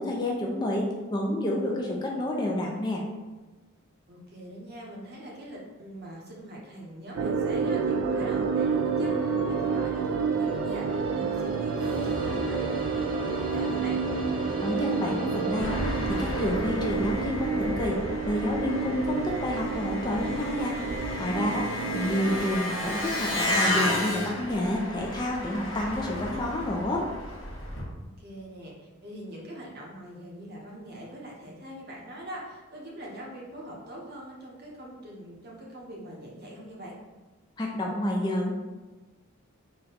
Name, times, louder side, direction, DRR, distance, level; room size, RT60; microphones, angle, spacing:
voice 1, 0.0-3.0 14.6-15.9 16.2-18.0 18.3-20.7 21.2-27.1 37.6-38.5, left 1 dB, 20° left, -1 dB, 0.4 m, -29 dB
voice 2, 4.1-14.0 21.8-22.5 28.2-37.0, equal, 45° right, -3 dB, 0.9 m, -42 dB
sound 1, 7.2-22.6, right 5 dB, 70° right, 0.3 m, -29 dB
sound 2, 7.6-17.1, equal, 90° right, 1.4 m, -40 dB
Engine, 15.6-27.8, left 1 dB, 60° left, 0.9 m, -32 dB
4.0 x 2.2 x 3.9 m, 1.2 s
head